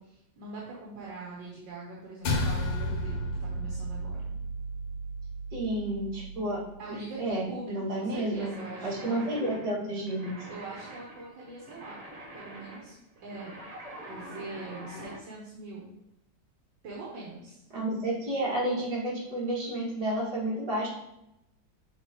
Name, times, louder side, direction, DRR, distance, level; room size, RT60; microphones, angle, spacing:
voice 1, 0.0-4.3 6.8-9.2 10.5-12.0 12.3-13.0 13.2-13.5 14.1-15.9 16.8-17.6, right 3 dB, 75° right, -5 dB, 1.8 m, -42 dB
sound 1, 2.2-6.8, equal, 90° left, 1.6 m, -33 dB
voice 2, 5.5-6.6 7.2-8.5 8.8-10.3 17.7-20.9, right 1 dB, 55° right, -6 dB, 2.5 m, -31 dB
sound 2, 8.3-15.2, right 1 dB, 35° right, 0.6 m, -45 dB
7.7 x 4.1 x 3.0 m, 0.85 s
omnidirectional pair, 2.0 m